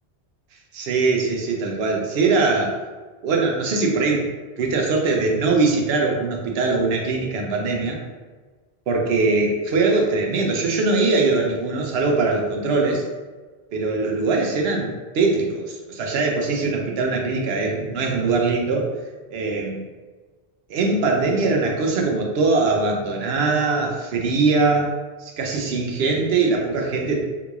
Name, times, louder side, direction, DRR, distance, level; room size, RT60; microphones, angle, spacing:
voice 1, 0.7-2.8 3.2-8.0 8.9-13.1 13.7-18.9 19.3-19.9 20.7-24.9 25.2-27.2, right 3 dB, 75° right, 1 dB, 0.8 m, -21 dB
3.7 x 2.9 x 2.3 m, 1.4 s
omnidirectional pair, 1.1 m